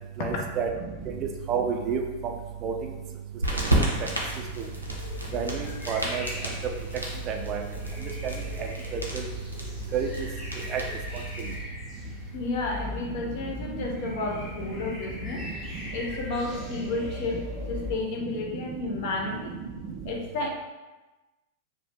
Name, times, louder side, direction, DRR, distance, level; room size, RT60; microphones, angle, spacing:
voice 1, 0.2-0.7 1.5-2.0 2.6-2.7 3.8-3.9 5.3-6.2 7.3-7.6 9.1-9.2 9.9-10.3 10.7-10.8, right 7 dB, 35° right, 2 dB, 0.3 m, -29 dB
sound 1, 3.4-11.6, right 1 dB, 90° right, 0.5 m, -32 dB
sound 2, 4.9-17.9, left 2 dB, 15° left, 0.8 m, -39 dB
voice 2, 12.3-15.4 15.9-17.4 17.7-19.5 20.0-20.5, left 3 dB, 50° left, 0 dB, 0.6 m, -31 dB
2.7 x 2.1 x 3.2 m, 1.1 s
figure-of-eight pair, 90°, 0 cm